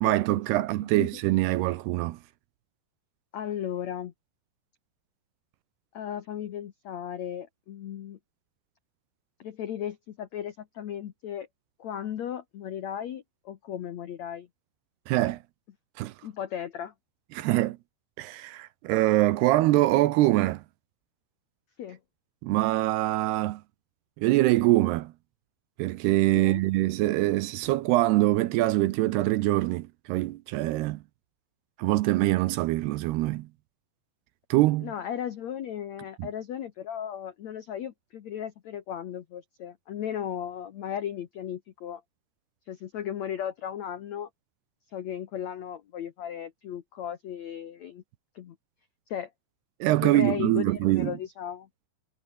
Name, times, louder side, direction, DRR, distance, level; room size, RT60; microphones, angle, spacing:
voice 1, 0.0-2.2 15.1-15.4 16.0-16.1 17.3-17.8 18.2-20.6 22.4-23.6 24.2-25.1 25.8-31.0 31.8-33.5 34.5-34.9 36.2-36.3 49.8-51.2, right 17 dB, 75° right, 2.6 m, -24 dB
voice 2, 3.3-4.1 5.9-8.2 9.4-11.5 11.8-14.5 16.2-16.9 21.8-22.0 26.4-26.6 34.8-42.0 42.7-44.3 44.9-48.0 48.3-48.5 49.1-49.3 50.0-51.7, left 9 dB, 80° left, 1.5 m, -36 dB
omnidirectional pair, 5.1 m